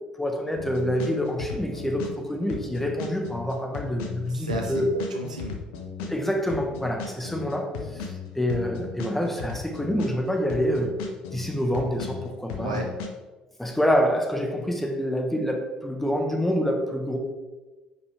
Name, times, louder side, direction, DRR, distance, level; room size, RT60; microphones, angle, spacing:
voice 1, 0.2-4.9 6.0-8.1 8.3-10.9 11.3-12.9 13.6-17.2, equal, 5° left, 3 dB, 1.3 m, -27 dB
sound 1, 0.6-2.2 2.5-6.2 6.5-10.2 10.5-13.1, left 6 dB, 70° left, 0.8 m, -36 dB
voice 2, 4.3-5.6 12.6-12.9, right 2 dB, 90° right, 2 dB, 0.8 m, -33 dB
5.2 x 5.1 x 4.8 m, 1.2 s
figure-of-eight pair, 55°, 4 cm